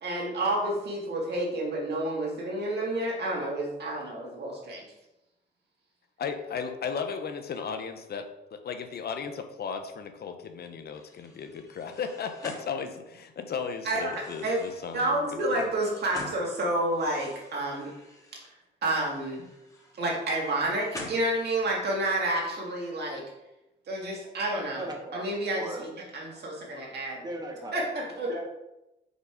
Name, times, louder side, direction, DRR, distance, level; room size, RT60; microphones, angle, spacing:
voice 1, 0.0-4.8 13.8-14.1 14.4-14.6 14.9-17.9 18.8-19.4 20.0-23.2 23.9-24.9 25.1-27.2 27.7-28.4, right 1 dB, 55° right, -2 dB, 2.0 m, -29 dB
voice 2, 6.2-15.7, left 6 dB, 55° left, 7 dB, 0.7 m, -35 dB
sound 1, 10.9-13.4 13.9-16.6 16.9-18.5 18.9-21.8, left 1 dB, 15° left, 1.6 m, -47 dB
voice 3, 24.7-25.3 25.5-25.8 27.2-27.8, right 2 dB, 20° right, 1 dB, 1.5 m, -37 dB
5.0 x 4.0 x 5.0 m, 0.94 s
cardioid pair, 90°, 20 cm